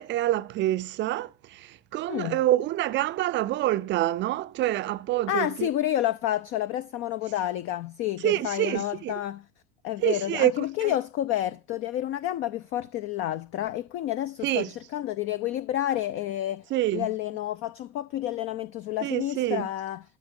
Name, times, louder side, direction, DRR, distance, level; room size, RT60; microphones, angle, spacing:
voice 1, 0.0-5.7 8.2-9.1 10.0-10.5 10.8-10.9 14.4-14.7 16.7-17.1 19.0-19.7, right 14 dB, 30° right, 0.6 m, -26 dB
voice 2, 2.1-2.4 5.3-9.4 9.8-16.6 16.9-20.0, left 13 dB, 35° left, 0.6 m, -30 dB
12.0 x 4.4 x 6.8 m
figure-of-eight pair, 80°, 36 cm